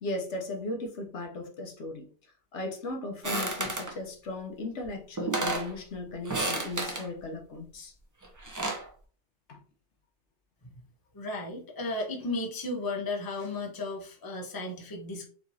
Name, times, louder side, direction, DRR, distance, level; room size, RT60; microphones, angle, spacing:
voice 1, 0.0-2.1 2.5-7.9 9.5-9.6, left 2 dB, 65° left, 3 dB, 1.1 m, -37 dB
sound 1, 3.2-3.9 4.8-4.9 5.2-5.7 6.2-7.1 8.2-8.9, right 2 dB, 25° right, 0.4 m, -31 dB
voice 2, 11.1-15.3, left 2 dB, 20° left, -1 dB, 0.7 m, -34 dB
4.6 x 3.0 x 2.7 m, 0.42 s
omnidirectional pair, 1.3 m